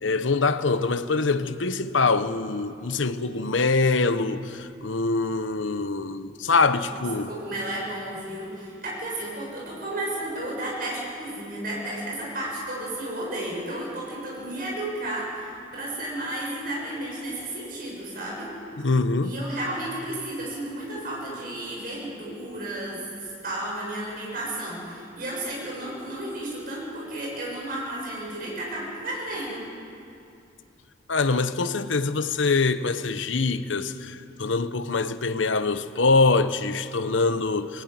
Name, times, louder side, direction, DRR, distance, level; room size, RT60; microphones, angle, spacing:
voice 1, 0.0-7.3 18.8-19.3 31.1-37.8, left 3 dB, 85° left, 1.0 m, -24 dB
voice 2, 6.9-18.5 19.2-29.6, right 1 dB, 50° right, 7.3 m, -33 dB
20.5 x 16.0 x 9.6 m
head